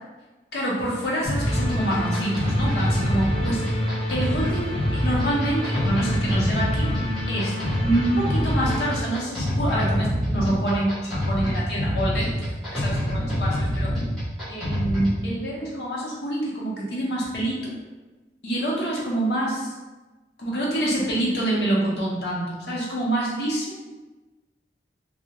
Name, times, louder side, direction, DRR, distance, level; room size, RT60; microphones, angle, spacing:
voice 1, 0.5-3.8 4.1-4.7 5.0-6.9 7.3-7.5 7.8-13.9 14.5-17.7 18.4-19.7 20.4-23.7, right 1 dB, 70° left, -4 dB, 0.7 m, -26 dB
sound 1, 1.2-15.2, equal, ahead, 0.8 m, -26 dB
sound 2, 1.4-8.9, left 1 dB, 30° left, 0.4 m, -29 dB
2.2 x 2.0 x 2.8 m, 1.2 s
head